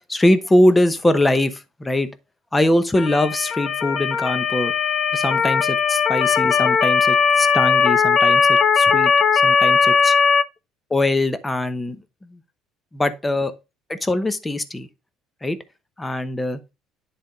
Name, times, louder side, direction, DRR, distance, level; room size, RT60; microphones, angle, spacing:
voice 1, 0.1-1.5 1.8-2.1 2.5-4.7 5.1-9.1 9.4-10.1 10.9-12.0 12.9-13.5 14.0-14.9 15.4-15.6 16.0-16.6, left 1 dB, 15° left, 0.9 m, -21 dB
Motor vehicle (road) / Siren, 3.0-10.4, left 6 dB, 45° left, 0.8 m, -18 dB
10.5 x 3.5 x 3.9 m
cardioid pair, 110°, 0 cm